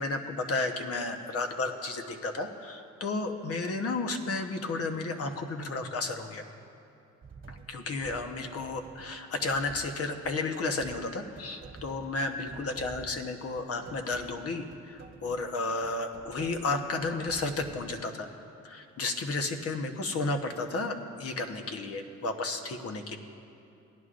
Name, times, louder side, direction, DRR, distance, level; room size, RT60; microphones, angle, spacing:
voice 1, 0.0-6.5 7.5-18.3 18.6-23.2, left 3 dB, 50° left, 5 dB, 1.0 m, -33 dB
sound 1, 7.2-18.0, right 5 dB, 40° right, 1.4 m, -50 dB
17.5 x 11.0 x 2.5 m, 2.8 s
cardioid pair, 90°, 30 cm